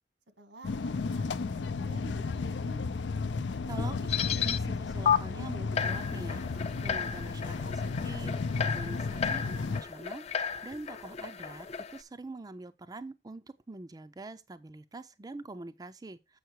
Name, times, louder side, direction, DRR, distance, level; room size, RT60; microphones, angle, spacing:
voice 1, 0.4-2.8, equal, 85° right, 1.6 m, -51 dB
sound 1, 0.6-9.8, left 4 dB, 85° left, 0.5 m, -33 dB
voice 2, 3.7-4.1 4.4-16.4, right 2 dB, 20° right, 0.4 m, -45 dB
sound 2, 4.1-4.6 5.1-5.2 5.8-12.0, left 7 dB, 35° left, 0.5 m, -33 dB
7.9 x 5.6 x 4.5 m
head